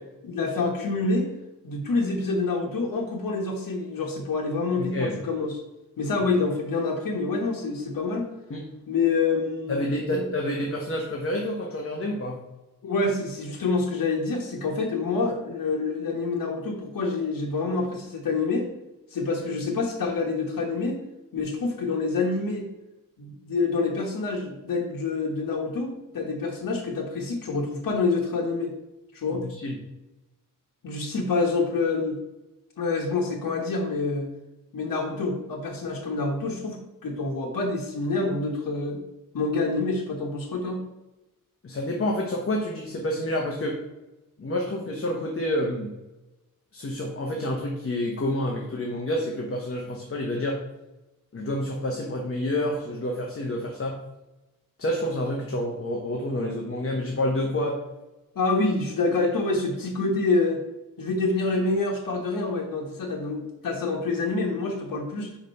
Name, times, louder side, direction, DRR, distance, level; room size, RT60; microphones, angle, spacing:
voice 1, 0.2-1.3 1.6-5.5 6.0-8.3 8.9-10.2 12.8-18.7 19.1-21.0 21.3-22.7 23.2-28.7 29.1-29.4 30.8-32.2 32.8-34.3 34.7-39.0 39.3-40.8 58.3-60.6 61.0-65.3, left 3 dB, 85° left, -1 dB, 1.2 m, -27 dB
voice 2, 4.8-5.2 8.5-8.6 9.7-12.4 29.3-29.8 41.6-43.8 44.4-45.9 46.7-50.6 51.3-54.0 54.8-57.8, left 1 dB, 40° left, 0 dB, 1.1 m, -28 dB
5.1 x 5.0 x 5.3 m, 0.99 s
wide cardioid pair, 120°, 34 cm